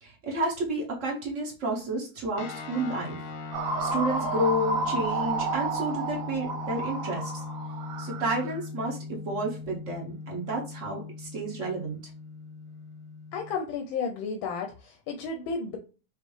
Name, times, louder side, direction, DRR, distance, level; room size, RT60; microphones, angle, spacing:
voice 1, 0.0-3.2 3.8-7.4 8.0-12.0, right 1 dB, 55° right, -2 dB, 1.0 m, -31 dB
sound 1, 2.4-13.6, left 4 dB, 65° left, 1.0 m, -39 dB
sound 2, 3.5-8.6, right 3 dB, 85° right, 1.5 m, -31 dB
voice 2, 13.3-15.8, left 5 dB, 90° left, 4 dB, 1.4 m, -32 dB
5.2 x 2.4 x 3.1 m, 0.35 s
omnidirectional pair, 2.1 m